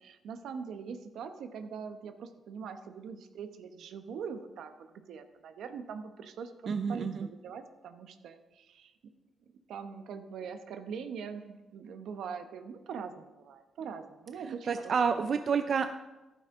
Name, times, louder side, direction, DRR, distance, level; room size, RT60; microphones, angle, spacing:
voice 1, 0.0-8.9 9.7-15.2, right 6 dB, 80° right, 8 dB, 1.0 m, -42 dB
voice 2, 6.7-7.3 14.5-15.9, right 6 dB, 55° right, 8 dB, 0.5 m, -29 dB
14.0 x 11.0 x 3.8 m, 1.1 s
cardioid pair, 90°, 0 cm